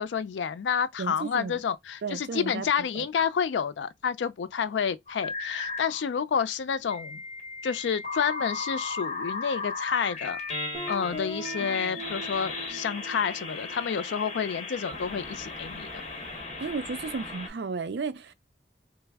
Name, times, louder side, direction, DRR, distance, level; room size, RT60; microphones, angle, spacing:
voice 1, 0.0-7.2 7.6-10.4 10.9-15.9, left 7 dB, 85° left, 0.4 m, -29 dB
voice 2, 1.0-1.6 2.0-2.7 2.9-3.1 11.6-11.9 16.6-18.3, right 4 dB, 70° right, 0.4 m, -34 dB
sound 1, 5.1-6.0 6.9-17.5, left 3 dB, 40° left, 0.9 m, -36 dB
Guitar, 10.7-15.4, right 2 dB, 5° left, 1.2 m, -42 dB
3.2 x 2.0 x 3.4 m
head